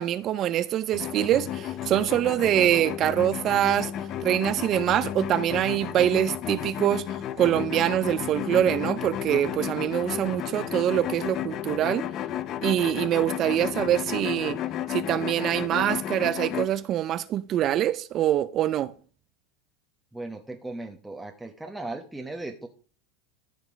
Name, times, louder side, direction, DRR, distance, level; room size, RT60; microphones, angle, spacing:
voice 1, 0.0-3.9 4.2-7.1 7.4-12.0 12.6-14.6 14.9-18.9, right 11 dB, 35° right, 0.5 m, -24 dB
sound 1, 0.9-16.7, left 11 dB, 40° left, 0.6 m, -33 dB
voice 2, 20.1-22.7, right 2 dB, 5° right, 1.0 m, -37 dB
13.5 x 5.2 x 5.1 m
supercardioid pair, 135°, 0 cm